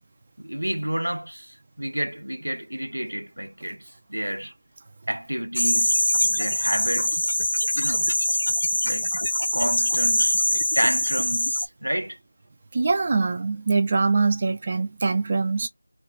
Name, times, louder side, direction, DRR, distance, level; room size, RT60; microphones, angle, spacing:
voice 1, 0.4-3.8 4.1-4.5 5.1-7.3 7.8-8.1 8.8-9.1 9.5-12.2, right 1 dB, 90° right, 0.5 m, -30 dB
sound 1, 5.6-11.7, left 1 dB, 70° left, 0.5 m, -23 dB
voice 2, 12.7-15.7, right 4 dB, 30° right, 0.3 m, -23 dB
2.3 x 2.2 x 2.3 m
figure-of-eight pair, 170°, 0 cm